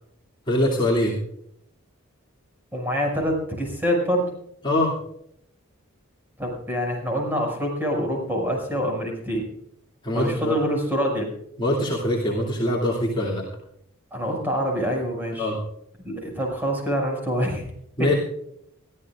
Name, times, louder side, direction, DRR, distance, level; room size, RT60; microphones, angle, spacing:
voice 1, 0.5-1.2 4.6-4.9 10.0-10.6 11.6-13.4 15.4-15.6 18.0-18.1, left 1 dB, 25° left, -5 dB, 2.7 m, -23 dB
voice 2, 2.7-4.3 6.4-9.4 10.1-11.3 14.1-15.5 16.0-17.6 18.0-18.2, equal, 10° right, -1 dB, 6.1 m, -25 dB
23.5 x 14.5 x 2.5 m, 0.72 s
head